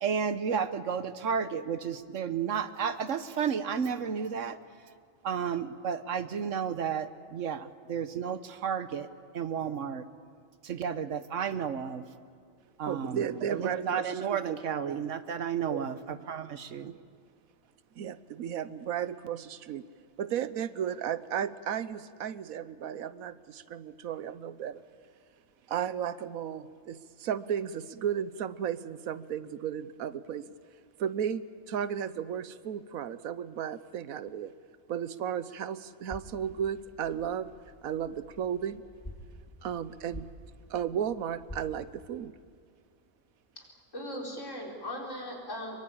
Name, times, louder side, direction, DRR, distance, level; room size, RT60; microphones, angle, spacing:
voice 1, 0.0-4.6 5.2-9.1 9.3-10.0 10.6-12.0 12.8-16.9, right 7 dB, 65° right, 12 dB, 1.2 m, -32 dB
voice 2, 12.9-15.0 15.6-15.9 18.0-19.9 20.2-24.8 25.7-30.5 31.0-34.5 34.9-37.5 37.8-38.8 39.6-40.3 40.7-42.3, right 9 dB, 85° right, 15 dB, 1.3 m, -34 dB
sound 1, 36.1-41.7, left 1 dB, 15° left, 1.6 m, -49 dB
voice 3, 43.6-45.8, equal, 60° left, -1 dB, 4.9 m, -39 dB
24.0 x 22.5 x 8.6 m, 2.3 s
omnidirectional pair, 1.4 m